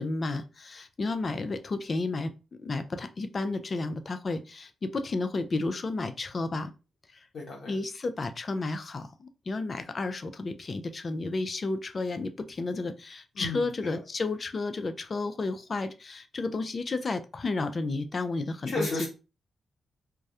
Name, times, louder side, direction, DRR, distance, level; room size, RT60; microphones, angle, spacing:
voice 1, 0.0-6.7 7.1-7.2 7.7-19.1, left 3 dB, 45° left, 9 dB, 0.4 m, -32 dB
voice 2, 7.3-7.7 13.3-13.6 18.7-19.1, left 3 dB, 65° left, -3 dB, 1.0 m, -33 dB
2.2 x 2.0 x 2.7 m, 0.31 s
supercardioid pair, 45°, 0 cm